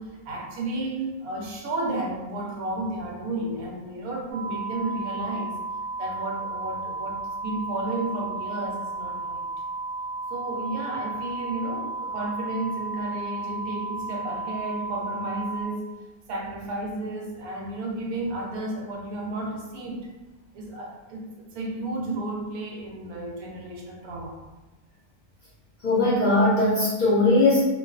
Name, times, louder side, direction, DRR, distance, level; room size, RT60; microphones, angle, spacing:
voice 1, 0.0-5.6 6.0-9.4 10.3-15.9 16.3-20.1 20.5-24.4, right 2 dB, 90° right, -1 dB, 1.1 m, -32 dB
sound 1, 4.3-15.6, right 3 dB, 65° right, 0.8 m, -33 dB
voice 2, 25.8-27.7, left 2 dB, 40° left, -9 dB, 0.7 m, -20 dB
2.4 x 2.3 x 2.3 m, 1.1 s
omnidirectional pair, 1.5 m